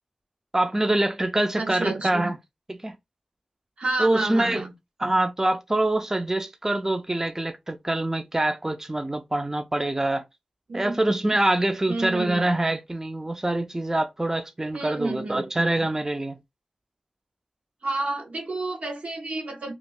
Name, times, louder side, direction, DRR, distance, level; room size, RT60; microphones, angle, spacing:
voice 1, 0.5-2.4 2.7-3.0 4.0-4.6 5.0-10.2 10.7-16.4, right 1 dB, 20° right, 0.4 m, -25 dB
voice 2, 1.5-2.3 3.8-4.7 10.7-11.0 11.9-12.4 14.7-15.4 17.8-19.7, right 2 dB, 80° right, 1.3 m, -30 dB
2.9 x 2.4 x 3.5 m
wide cardioid pair, 55°, 2 cm